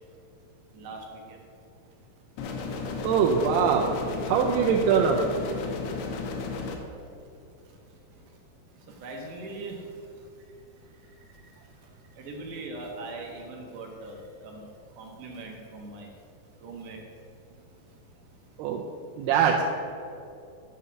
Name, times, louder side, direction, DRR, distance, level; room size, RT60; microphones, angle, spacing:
voice 1, 0.7-1.1 9.0-9.8 12.2-14.2 14.4-14.6 15.0-16.1 16.6-17.0, right 3 dB, 65° right, 1 dB, 2.4 m, -40 dB
sound 1, 2.4-6.8, left 4 dB, 85° left, 3.0 m, -34 dB
voice 2, 3.0-3.9 4.3-5.3 18.6-18.8 19.2-19.6, right 6 dB, 90° right, 0 dB, 2.7 m, -22 dB
9.8 x 5.6 x 7.0 m, 2.5 s
omnidirectional pair, 4.6 m